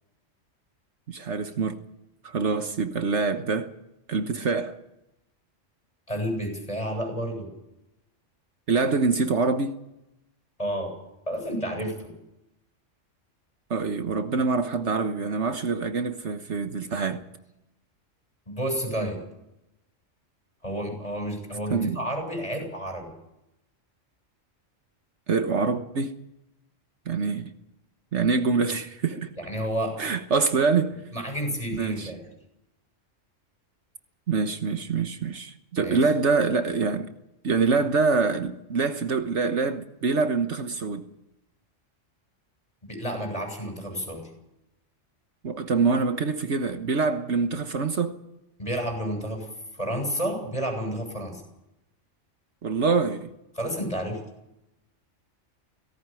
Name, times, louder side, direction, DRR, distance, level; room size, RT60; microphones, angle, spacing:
voice 1, 1.1-1.8 2.2-3.7 4.1-4.8 8.7-9.8 13.7-17.2 21.7-22.0 25.3-26.1 27.1-27.5 28.1-29.3 30.0-31.0 31.7-32.1 34.3-37.1 37.4-41.1 45.4-48.2 52.6-53.3, right 4 dB, 65° right, 1.5 m, -25 dB
voice 2, 6.1-7.5 10.6-11.0 11.3-12.1 18.5-19.2 20.6-23.1 29.4-30.0 31.1-32.2 35.8-36.0 42.9-44.2 48.6-49.5 49.8-51.4 53.6-54.2, equal, 30° left, 7.8 m, -30 dB
18.0 x 17.5 x 9.1 m
omnidirectional pair, 1.3 m